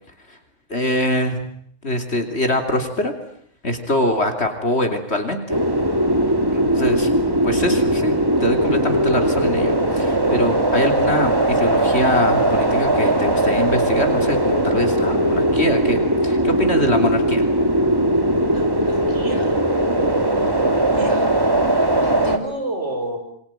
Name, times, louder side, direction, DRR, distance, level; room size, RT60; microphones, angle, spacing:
voice 1, 0.7-1.4 1.8-3.1 3.6-5.6 6.5-7.1 7.4-8.1 8.4-17.5, left 1 dB, 55° left, 5 dB, 3.5 m, -23 dB
sound 1, 5.5-22.4, right 1 dB, 20° right, 2.6 m, -19 dB
voice 2, 18.5-19.6 20.9-21.3 22.0-23.2, right 1 dB, 65° right, 6 dB, 6.1 m, -30 dB
28.0 x 23.5 x 9.0 m, 0.66 s
omnidirectional pair, 1.3 m